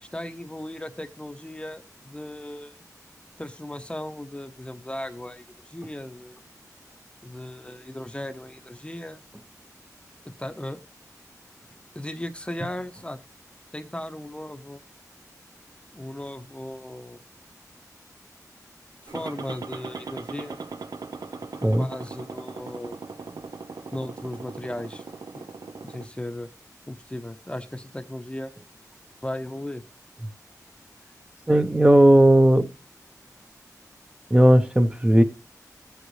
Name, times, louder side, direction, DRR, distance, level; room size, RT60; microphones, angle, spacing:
voice 1, 0.0-2.8 3.4-6.4 7.2-9.2 10.4-10.8 11.9-13.2 13.7-14.8 15.9-17.2 19.0-20.7 21.6-23.0 23.9-25.0 25.3-25.4 25.8-26.5 26.9-28.5 29.2-29.8, left 1 dB, 15° left, 0.8 m, -36 dB
sound 1, 19.1-26.1, right 4 dB, 75° right, 0.7 m, -39 dB
voice 2, 31.5-32.7 34.3-35.2, right 1 dB, 20° right, 0.8 m, -16 dB
15.5 x 8.1 x 3.2 m
wide cardioid pair, 60°, 6 cm